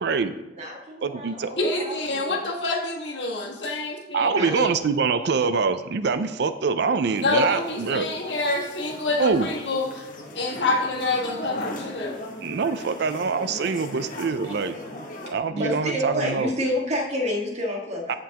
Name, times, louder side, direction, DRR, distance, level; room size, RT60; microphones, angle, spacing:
voice 1, 0.0-0.3 1.0-1.5 4.1-8.1 9.2-9.5 12.4-14.8 15.3-16.5 18.1-18.2, right 5 dB, 65° right, 11 dB, 0.5 m, -24 dB
voice 2, 0.5-2.5 4.2-4.7 15.2-18.2, equal, 40° right, 0 dB, 1.6 m, -29 dB
voice 3, 1.6-4.7 7.2-10.1 10.3-12.2, left 2 dB, 70° left, 0 dB, 1.6 m, -27 dB
sound 1, 7.2-15.3, left 1 dB, 50° left, 1.1 m, -39 dB
15.0 x 5.2 x 2.9 m, 1.0 s
head